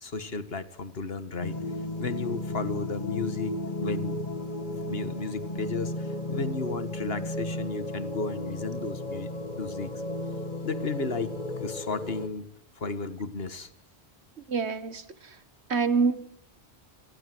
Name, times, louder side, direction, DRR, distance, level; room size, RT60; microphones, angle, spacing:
voice 1, 0.0-1.6 2.0-4.2 4.8-9.3 9.6-9.9 10.6-12.5 12.8-13.7, left 4 dB, 60° left, 12 dB, 1.9 m, -33 dB
sound 1, 1.4-12.3, left 1 dB, 40° left, 2.1 m, -34 dB
voice 2, 14.5-15.0 15.7-16.2, right 5 dB, 75° right, 13 dB, 1.9 m, -25 dB
28.5 x 23.0 x 7.9 m, 0.67 s
omnidirectional pair, 1.1 m